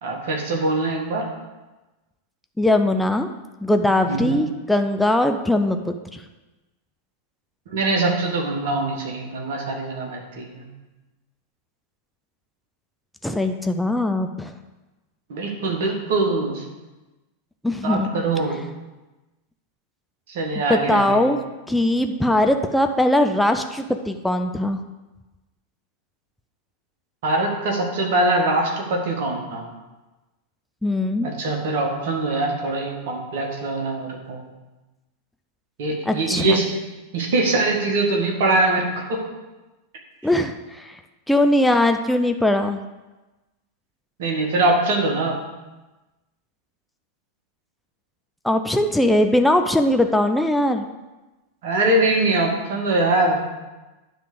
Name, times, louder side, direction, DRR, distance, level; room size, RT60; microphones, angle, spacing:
voice 1, 0.0-1.3 4.1-4.4 7.7-10.6 15.3-16.6 17.8-18.6 20.3-21.2 27.2-29.6 31.2-34.4 35.8-36.8 37.1-39.3 44.2-45.4 51.6-53.4, right 2 dB, 55° right, 1 dB, 1.7 m, -23 dB
voice 2, 2.6-3.3 3.6-6.2 13.2-14.5 17.6-18.2 20.7-21.4 21.7-24.8 30.8-31.3 36.1-36.6 40.2-41.0 41.3-42.8 48.4-50.9, left 1 dB, 5° left, 6 dB, 0.5 m, -20 dB
10.0 x 3.5 x 6.7 m, 1.1 s
figure-of-eight pair, 90°, 0 cm